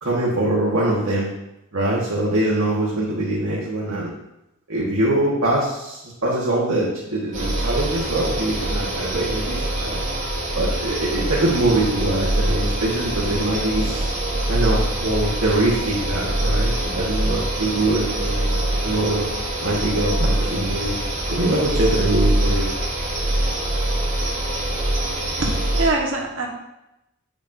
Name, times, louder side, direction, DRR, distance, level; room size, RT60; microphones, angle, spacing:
voice 1, 0.0-1.3 1.7-4.1 4.7-10.0 10.5-14.0 14.5-19.3 19.6-21.0 21.3-22.7, right 1 dB, 85° right, -6 dB, 1.5 m, -23 dB
sound 1, 7.3-25.9, right 1 dB, 35° right, 1.9 m, -24 dB
voice 2, 25.4-26.5, right 2 dB, 65° right, -1 dB, 1.5 m, -23 dB
7.4 x 7.0 x 2.7 m, 0.91 s
head